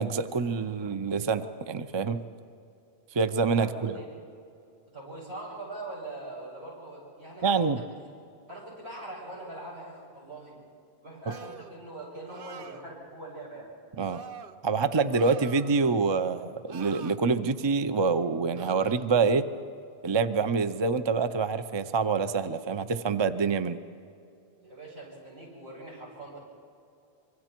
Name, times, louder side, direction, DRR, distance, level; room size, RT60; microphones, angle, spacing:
voice 1, 0.0-2.2 3.1-4.0 7.4-7.8 14.0-14.2 14.6-19.4 20.0-23.8, right 4 dB, 30° right, 11 dB, 0.6 m, -26 dB
voice 2, 3.6-4.1 4.9-7.9 8.5-10.6 11.0-13.7 24.6-26.4, right 2 dB, 85° right, -5 dB, 7.5 m, -42 dB
sound 1, 11.3-11.8 12.3-12.9 14.0-14.6 15.1-16.0 16.7-17.2 18.6-19.0, right 6 dB, 60° right, 1.0 m, -46 dB
25.5 x 24.0 x 4.5 m, 2.6 s
omnidirectional pair, 1.1 m